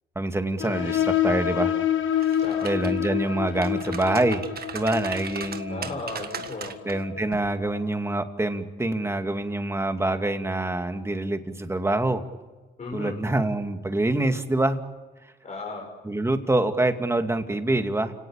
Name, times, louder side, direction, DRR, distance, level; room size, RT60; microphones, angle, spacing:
voice 1, 0.2-1.8 2.6-4.4 4.7-5.9 6.8-12.2 12.9-14.8 16.0-18.1, right 2 dB, 15° right, 7 dB, 2.3 m, -25 dB
sound 1, 0.6-7.9, left 10 dB, 85° left, 1.7 m, -28 dB
sound 2, 2.1-3.1 3.5-6.9 7.3-7.5, right 7 dB, 50° right, 1.7 m, -38 dB
voice 2, 2.4-2.8 5.7-6.7 7.1-7.4 12.8-13.2 15.4-15.9, left 3 dB, 35° left, -1 dB, 5.7 m, -36 dB
30.0 x 18.0 x 8.9 m, 1.3 s
cardioid pair, 90°, 20 cm